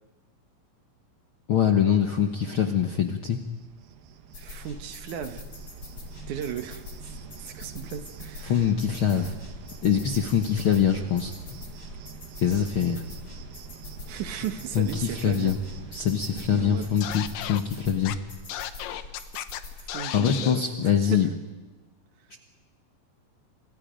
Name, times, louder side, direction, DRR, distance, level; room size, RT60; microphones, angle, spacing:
voice 1, 1.5-3.4 8.4-9.3 9.8-11.3 12.4-13.0 14.7-15.6 15.9-18.2 20.1-21.3 22.3-22.4, left 8 dB, 65° left, 4 dB, 1.3 m, -24 dB
Cricket, 2.9-18.6, right 7 dB, 85° right, 3.0 m, -46 dB
sound 1, 4.3-19.8, left 3 dB, 35° left, 5.1 m, -44 dB
voice 2, 4.4-5.4 6.3-7.1 7.4-8.7 9.1-9.3 14.1-15.6 16.5-16.9 19.8-20.6 21.1-21.3, right 9 dB, 70° right, 8 dB, 2.5 m, -36 dB
Scratching (performance technique), 17.0-17.6 18.1-18.2 18.5-19.6 19.9-20.6, left 12 dB, 80° left, 2.6 m, -34 dB
29.0 x 27.0 x 5.2 m, 1.2 s
omnidirectional pair, 4.0 m